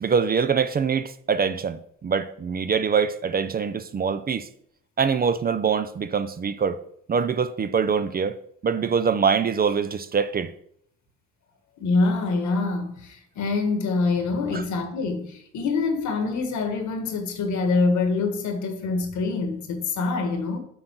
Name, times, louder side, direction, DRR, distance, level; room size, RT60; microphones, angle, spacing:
voice 1, 0.0-4.5 5.0-6.8 7.1-8.4 8.6-10.5 14.5-14.6, right 6 dB, 30° right, 0.4 m, -24 dB
voice 2, 11.8-20.6, left 3 dB, 70° left, 1.5 m, -25 dB
7.8 x 3.8 x 6.0 m
cardioid pair, 90°, 30 cm